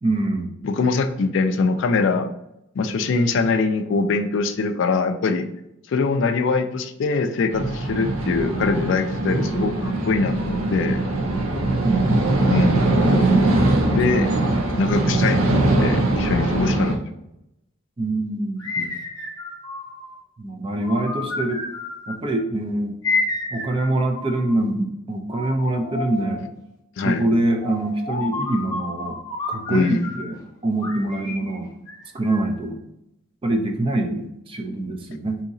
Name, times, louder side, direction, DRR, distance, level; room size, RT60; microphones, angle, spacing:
voice 1, 0.0-0.5 11.8-12.5 13.9-14.6 14.9-15.4 18.0-18.7 20.4-21.6 22.1-22.9 23.5-26.4 27.0-29.2 29.5-31.7 32.1-32.8 33.4-35.4, right 1 dB, 25° right, 4 dB, 0.4 m, -24 dB
voice 2, 0.6-2.3 2.8-5.5 5.9-11.0 12.5-13.0 13.9-14.3 14.8-17.0 18.8-19.0 27.0-27.3 29.7-30.1, left 4 dB, 60° left, 9 dB, 0.3 m, -22 dB
sound 1, 7.5-17.0, right 2 dB, 85° right, 0.6 m, -21 dB
sound 2, 18.6-20.2 20.8-22.4 23.0-24.7 25.3-26.5 27.6-30.4 30.8-32.6, left 3 dB, 15° left, 0.7 m, -31 dB
3.8 x 2.8 x 2.6 m, 0.85 s
head